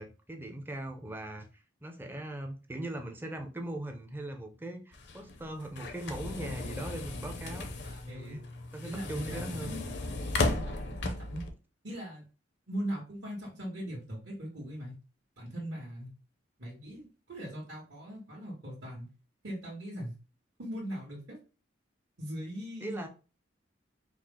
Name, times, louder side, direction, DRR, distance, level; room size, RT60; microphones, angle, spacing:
voice 1, 0.0-1.5 1.8-7.7 8.1-8.4 8.7-9.8 22.8-23.1, right 1 dB, 10° right, 0.5 m, -40 dB
sound 1, 4.9-11.5, left 2 dB, 60° left, 0.6 m, -35 dB
voice 2, 7.5-8.4 8.8-9.9 10.5-11.4 11.8-12.2 12.7-14.9 15.4-16.1 16.6-19.1 19.4-20.1 20.6-21.4 22.2-23.1, equal, 65° right, 1.5 m, -40 dB
4.7 x 2.0 x 3.6 m
head